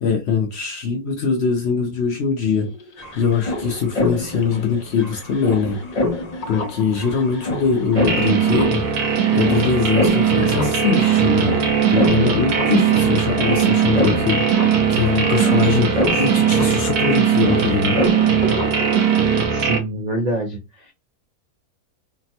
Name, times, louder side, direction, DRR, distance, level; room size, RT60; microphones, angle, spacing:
voice 1, 0.0-2.7 3.2-5.8 6.5-8.8 9.3-11.5 11.9-14.5 14.9-18.0, left 6 dB, 60° left, 0.7 m, -22 dB
sound 1, 2.7-19.5, left 2 dB, 75° left, 0.3 m, -28 dB
sound 2, 7.9-19.8, right 7 dB, 85° right, 1.1 m, -19 dB
voice 2, 19.5-20.9, right 2 dB, 60° right, 0.4 m, -26 dB
3.3 x 2.1 x 2.7 m
omnidirectional pair, 1.6 m